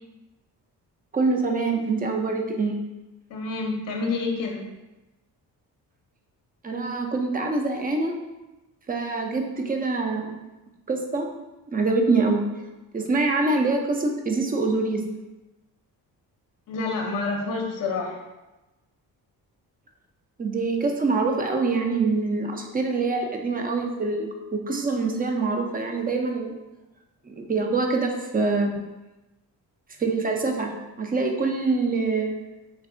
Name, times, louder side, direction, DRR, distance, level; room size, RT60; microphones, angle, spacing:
voice 1, 1.1-2.7 6.6-8.1 8.9-10.3 10.9-11.3 11.7-12.4 12.9-15.0 20.4-26.5 27.3-28.8 30.0-32.3, right 3 dB, 20° right, 3 dB, 0.5 m, -25 dB
voice 2, 3.3-4.6 16.7-18.2, left 3 dB, 50° left, 1 dB, 0.7 m, -28 dB
3.3 x 2.6 x 2.5 m, 1.1 s
supercardioid pair, 55°, 43 cm